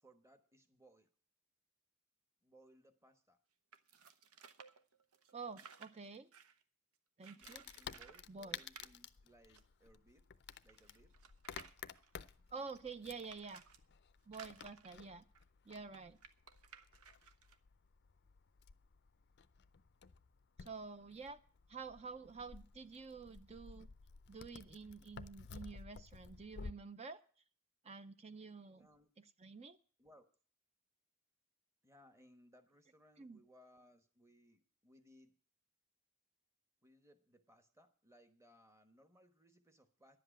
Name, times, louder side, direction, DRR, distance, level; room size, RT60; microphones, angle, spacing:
voice 1, 0.0-1.1 2.4-3.4 7.3-10.3 10.6-11.1 28.7-29.1 30.0-30.3 31.8-35.3 36.8-40.2, equal, 15° right, 8 dB, 1.2 m, -66 dB
sound 1, 3.7-6.6 7.2-8.2 8.5-8.9 9.6-9.7 9.9-10.0 10.5-13.8 14.3-17.6, right 6 dB, 80° right, 0.9 m, -59 dB
voice 2, 5.3-6.3 7.2-7.6 8.3-8.6 12.5-13.6 14.3-15.2 15.7-16.2 20.6-21.4 21.7-23.9 24.3-27.2 27.8-28.9 29.2-29.8 33.2-33.4, right 4 dB, 30° right, 12 dB, 0.5 m, -49 dB
Wood, 7.4-26.7, left 6 dB, 50° left, 0.5 m, -54 dB
11.0 x 7.8 x 8.7 m, 0.44 s
head